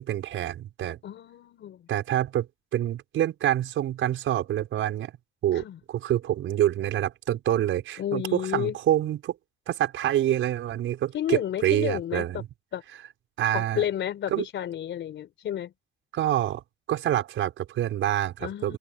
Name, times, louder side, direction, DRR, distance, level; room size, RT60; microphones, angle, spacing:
voice 1, 0.0-1.0 1.9-2.5 2.7-5.1 5.4-9.3 9.7-12.5 13.4-13.8 14.3-14.4 16.1-16.6 16.9-18.8, right 12 dB, 80° right, 5.6 m, -26 dB
voice 2, 1.0-1.9 5.5-5.8 8.0-8.8 11.1-12.4 12.7-12.8 13.5-15.7 18.4-18.8, left 10 dB, 70° left, 4.3 m, -31 dB
open air
cardioid pair, 90°, 20 cm